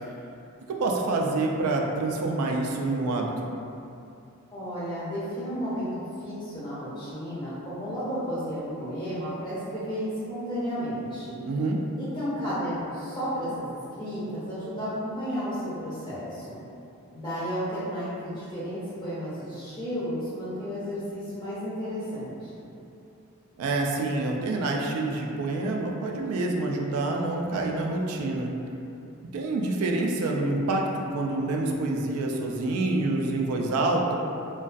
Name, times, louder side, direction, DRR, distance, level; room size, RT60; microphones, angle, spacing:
voice 1, 0.7-3.5 11.5-11.8 23.6-28.5 29.3-34.1, right 2 dB, 80° right, 3 dB, 0.3 m, -27 dB
voice 2, 4.5-11.4 12.0-16.6 17.1-22.5, equal, 20° left, -12 dB, 0.5 m, -33 dB
2.3 x 2.2 x 2.4 m, 2.7 s
head